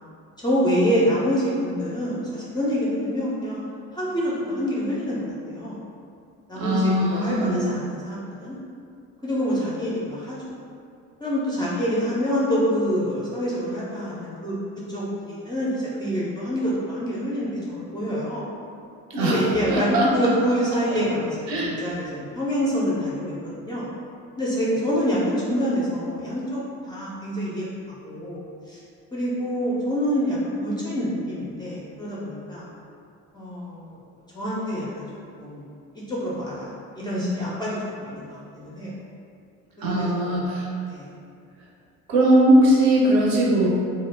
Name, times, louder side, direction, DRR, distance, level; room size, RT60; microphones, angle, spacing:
voice 1, 0.4-3.6 3.9-5.8 6.5-8.6 9.2-10.5 11.2-14.5 14.9-18.4 19.2-23.8 24.4-27.7 28.0-28.8 29.1-30.4 30.6-32.7 33.3-34.0 34.3-35.1 35.4-35.7 35.9-38.9 39.8-40.4 40.9-41.1, equal, 10° left, -8 dB, 0.4 m, -26 dB
voice 2, 6.5-7.7 19.1-19.4 19.7-20.1 21.5-21.7 39.8-40.7 42.1-43.7, right 1 dB, 55° right, -4 dB, 0.7 m, -19 dB
2.0 x 2.0 x 3.2 m, 2.4 s
figure-of-eight pair, 55°, 43 cm